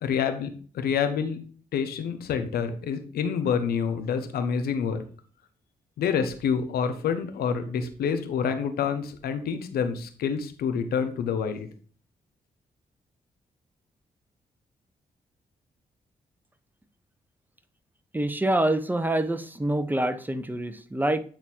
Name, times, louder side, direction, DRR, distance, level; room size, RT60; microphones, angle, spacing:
voice 1, 0.0-1.4 1.7-5.0 6.0-11.7, left 7 dB, 85° left, 8 dB, 1.1 m, -27 dB
voice 2, 18.1-21.2, right 1 dB, 10° right, 10 dB, 1.1 m, -26 dB
8.8 x 4.0 x 4.6 m, 0.43 s
supercardioid pair, 50°, 16 cm